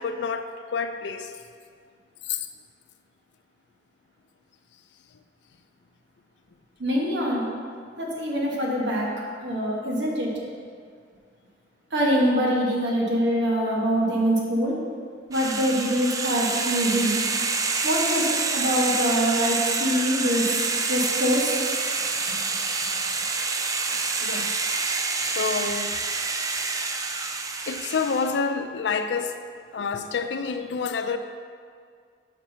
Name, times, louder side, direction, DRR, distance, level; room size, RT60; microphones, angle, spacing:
voice 1, 0.0-1.3 2.2-2.5 24.2-26.0 27.7-29.4 29.7-31.2, left 5 dB, 75° left, 8 dB, 0.4 m, -29 dB
voice 2, 6.8-7.5 8.0-9.1 9.4-10.3 11.9-14.7 15.3-17.2 17.8-21.5 22.3-22.4, equal, 90° right, -3 dB, 1.4 m, -24 dB
sound 1, 15.3-28.4, right 4 dB, 20° right, 0.3 m, -27 dB
5.9 x 5.4 x 4.4 m, 2.1 s
head